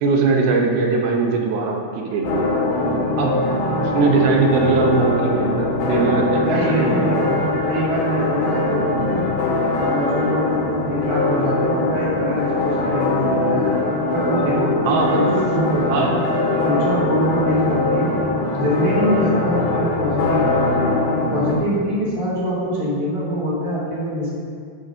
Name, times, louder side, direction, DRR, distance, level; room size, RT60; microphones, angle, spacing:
voice 1, 0.0-2.5 3.2-3.4 3.7-7.1 14.9-15.4 15.9-16.1, right 4 dB, 80° right, 0 dB, 2.7 m, -20 dB
sound 1, 2.2-21.5, left 2 dB, 90° left, 2.9 m, -22 dB
voice 2, 6.4-9.3 9.7-13.7 14.1-16.3 16.6-18.1 18.5-20.7 21.3-24.3, equal, 20° right, -8 dB, 0.8 m, -23 dB
9.5 x 3.3 x 6.3 m, 2.1 s
omnidirectional pair, 4.3 m